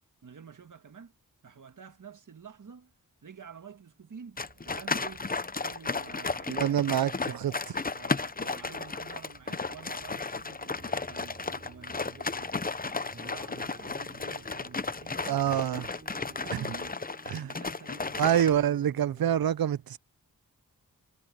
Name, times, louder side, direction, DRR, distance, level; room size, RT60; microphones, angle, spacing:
voice 1, 0.2-1.1 1.4-2.9 3.2-5.3 5.6-7.5 7.9-12.6 12.8-15.7 16.1-17.0 17.4-18.7, right 6 dB, 60° right, 1.7 m, -49 dB
sound 1, 4.4-18.5, left 4 dB, 25° left, 0.8 m, -34 dB
sound 2, 4.4-17.0, right 3 dB, 45° right, 5.6 m, -60 dB
voice 2, 6.5-7.1 7.4-7.5 15.3-15.9 17.3-17.5 18.2-20.0, right 10 dB, 85° right, 0.6 m, -26 dB
sound 3, 10.7-19.4, right 2 dB, 30° right, 7.4 m, -54 dB
wide cardioid pair, 75°, 35 cm